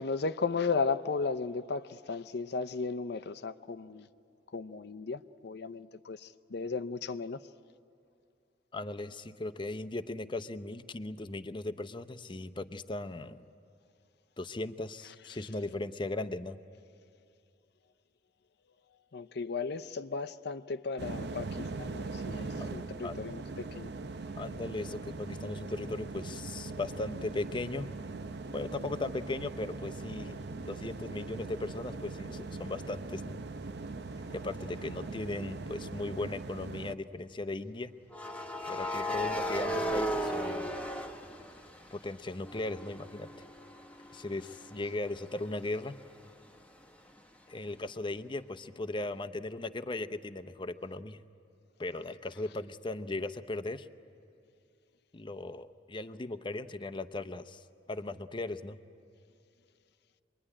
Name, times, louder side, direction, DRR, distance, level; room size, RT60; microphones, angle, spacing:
voice 1, 0.0-4.1 4.5-7.4 19.1-23.9, left 4 dB, 65° left, 0.6 m, -35 dB
voice 2, 8.7-13.4 14.4-16.6 22.6-22.7 23.0-23.2 24.4-27.9 28.5-30.4 30.7-33.4 34.3-37.9 38.7-40.7 41.9-43.3 44.1-46.0 47.5-51.2 51.8-53.9 55.1-57.6 57.9-58.8, left 2 dB, 25° left, 0.7 m, -37 dB
sound 1, 21.0-36.9, right 3 dB, 65° right, 0.7 m, -41 dB
sound 2, 34.8-35.0 38.1-42.0 42.4-46.0, equal, 10° left, 1.1 m, -36 dB
26.0 x 21.5 x 10.0 m
head